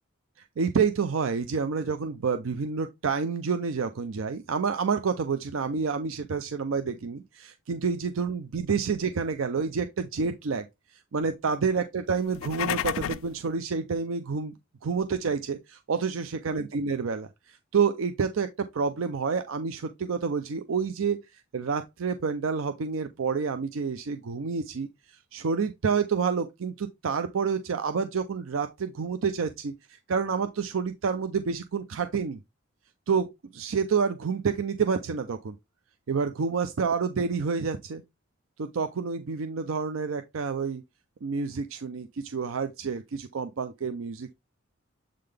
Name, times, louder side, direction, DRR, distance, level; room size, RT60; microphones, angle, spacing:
voice 1, 0.6-10.7 10.9-14.5 14.8-32.4 33.1-35.5 36.1-38.0 38.6-40.8 41.2-44.3, right 5 dB, 85° right, 0.5 m, -29 dB
sound 1, 12.2-13.4, left 10 dB, 80° left, 0.3 m, -31 dB
7.6 x 3.8 x 3.3 m
head